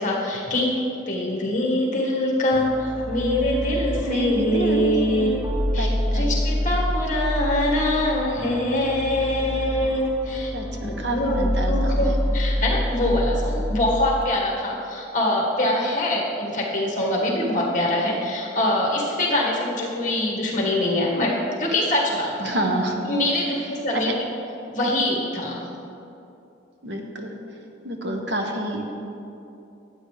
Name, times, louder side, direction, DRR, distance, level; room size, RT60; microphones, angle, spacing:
voice 1, 0.0-5.3 5.5-5.9 6.1-10.5 10.8-21.3 21.6-22.5 23.0-24.1 24.7-25.6, left 1 dB, 45° left, -3 dB, 1.8 m, -24 dB
sound 1, 2.5-14.2, equal, 5° right, 0.7 m, -27 dB
voice 2, 4.1-5.3 5.8-6.3 10.5-12.1 22.4-23.0 23.9-24.0 26.8-27.3 27.8-29.0, right 1 dB, 65° right, 2 dB, 1.0 m, -28 dB
13.0 x 8.5 x 3.4 m, 2.8 s
head